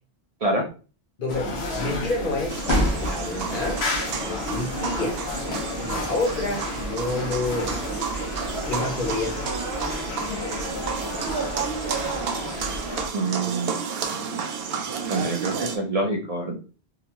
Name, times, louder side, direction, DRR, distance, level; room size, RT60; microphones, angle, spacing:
voice 1, 1.2-2.6 3.0-3.9 4.2-5.2 5.8-8.0 8.7-9.5 15.2-15.3, left 2 dB, 60° left, 1 dB, 1.0 m, -29 dB
sound 1, 1.3-13.1, left 2 dB, 85° left, 0.9 m, -30 dB
sound 2, 2.5-15.8, right 6 dB, 75° right, 0.8 m, -31 dB
voice 2, 13.1-13.8 15.1-16.6, right 2 dB, 45° right, 0 dB, 0.6 m, -26 dB
3.7 x 2.2 x 2.8 m, 0.35 s
omnidirectional pair, 1.0 m